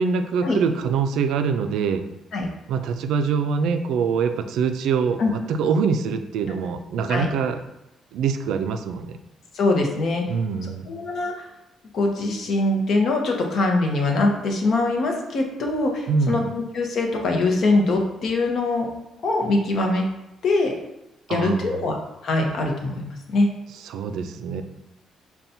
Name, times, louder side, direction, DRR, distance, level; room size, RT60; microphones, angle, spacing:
voice 1, 0.0-2.0 2.7-7.6 8.1-9.2 10.3-11.0 16.1-16.5 21.3-21.7 23.8-24.6, right 5 dB, 80° right, 8 dB, 0.3 m, -24 dB
voice 2, 9.5-10.2 10.9-11.4 11.9-18.9 19.2-20.0 20.4-20.7 21.3-22.0 22.2-23.5, left 2 dB, 50° left, 1 dB, 0.7 m, -22 dB
5.6 x 2.2 x 2.7 m, 0.92 s
cardioid pair, 170°, 0 cm